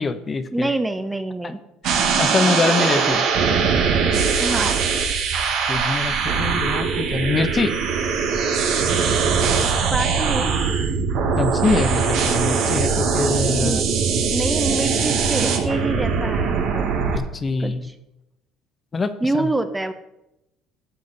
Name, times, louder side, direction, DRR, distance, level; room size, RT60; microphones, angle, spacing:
voice 1, 0.0-0.7 1.8-3.2 5.7-7.8 11.4-13.8 17.1-17.8 18.9-19.5, left 4 dB, 30° left, 10 dB, 0.9 m, -24 dB
voice 2, 0.5-1.6 4.4-4.8 9.6-10.5 13.5-13.9 14.3-16.9 17.6-17.9 19.2-19.9, right 2 dB, 10° right, 9 dB, 0.8 m, -26 dB
sound 1, 1.8-17.2, right 5 dB, 70° right, 1.5 m, -21 dB
12.5 x 7.7 x 4.1 m, 0.89 s
supercardioid pair, 80°, 0 cm